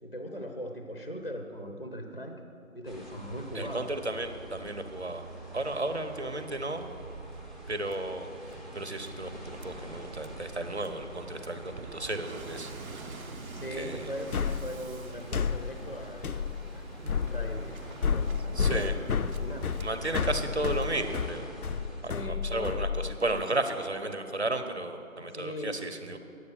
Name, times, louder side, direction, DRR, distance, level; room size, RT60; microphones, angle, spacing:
voice 1, 0.0-2.4 2.7-4.0 11.7-11.8 13.4-16.5 16.7-19.0 19.3-19.7 20.0-20.4 22.0-22.7 25.3-25.9, equal, 40° left, 4 dB, 0.6 m, -40 dB
sound 1, 2.9-22.0, right 1 dB, ahead, 0.7 m, -46 dB
voice 2, 3.5-5.2 5.5-6.9 7.7-8.3 8.7-13.2 13.7-14.1 18.5-18.9 19.8-21.4 22.0-26.2, right 2 dB, 50° right, 8 dB, 0.8 m, -34 dB
Waves surf, 6.4-21.2, right 4 dB, 80° right, 0.7 m, -47 dB
sound 2, 14.3-23.4, left 6 dB, 90° left, 0.6 m, -31 dB
9.9 x 8.0 x 7.0 m, 2.6 s
figure-of-eight pair, 170°, 42 cm